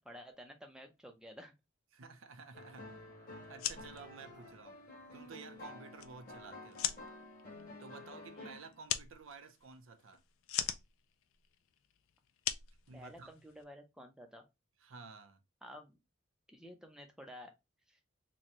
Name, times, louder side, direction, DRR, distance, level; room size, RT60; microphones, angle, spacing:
voice 1, 0.0-1.5 8.3-8.6 12.9-14.4 15.6-16.0 16.5-17.5 17.9-18.0, equal, 5° right, 0.6 m, -52 dB
voice 2, 1.9-3.1 3.5-4.8 5.1-6.9 7.8-10.2 12.9-13.3 14.8-15.4, right 4 dB, 70° right, 0.6 m, -53 dB
sound 1, 2.5-8.8, left 2 dB, 45° left, 1.9 m, -51 dB
sound 2, 3.4-13.6, left 11 dB, 75° left, 0.4 m, -42 dB
4.1 x 2.3 x 2.9 m
head